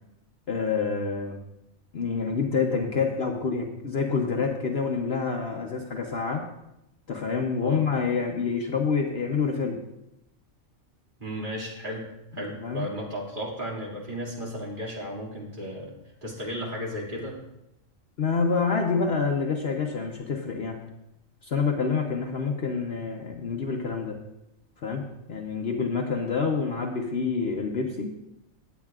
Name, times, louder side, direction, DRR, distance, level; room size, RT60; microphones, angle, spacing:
voice 1, 0.5-1.4 1.9-6.5 7.1-9.8 12.6-12.8 18.2-20.8 21.4-24.2 24.8-25.0 25.3-28.1, left 5 dB, 55° left, 2 dB, 1.0 m, -27 dB
voice 2, 11.2-12.1 12.3-15.9 16.2-17.3, equal, 40° right, -3 dB, 2.5 m, -34 dB
17.5 x 8.2 x 2.4 m, 0.87 s
omnidirectional pair, 1.4 m